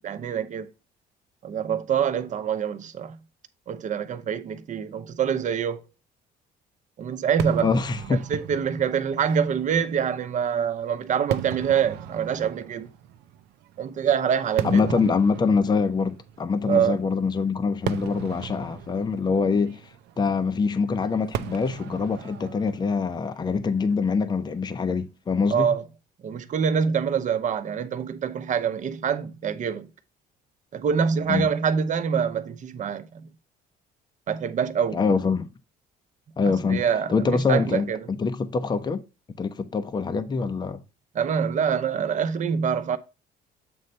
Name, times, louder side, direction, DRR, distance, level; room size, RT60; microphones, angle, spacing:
voice 1, 0.0-0.7 1.4-3.2 3.7-5.8 7.0-7.7 8.3-12.9 13.8-14.9 16.7-17.0 25.5-25.8 26.2-29.9 30.7-33.3 34.3-35.0 36.4-38.1 41.1-43.0, right 7 dB, 45° right, 0.8 m, -25 dB
Fireworks, 7.4-24.7, right 10 dB, 80° right, 0.6 m, -38 dB
voice 2, 7.6-8.2 14.6-19.8 20.2-25.7 31.3-31.5 34.9-35.5 36.4-39.0 39.4-40.8, left 4 dB, 25° left, 0.6 m, -24 dB
7.8 x 3.2 x 5.3 m
cardioid pair, 110°, 17 cm